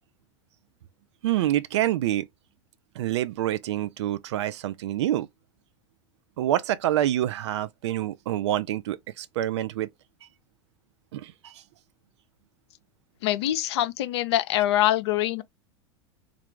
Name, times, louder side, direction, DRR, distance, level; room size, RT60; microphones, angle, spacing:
voice 1, 1.2-2.3 3.0-5.3 6.4-9.9 11.1-11.5, right 13 dB, 65° right, 0.4 m, -27 dB
voice 2, 13.2-15.4, left 13 dB, 60° left, 0.6 m, -24 dB
3.3 x 2.4 x 3.5 m
figure-of-eight pair, 85°, 16 cm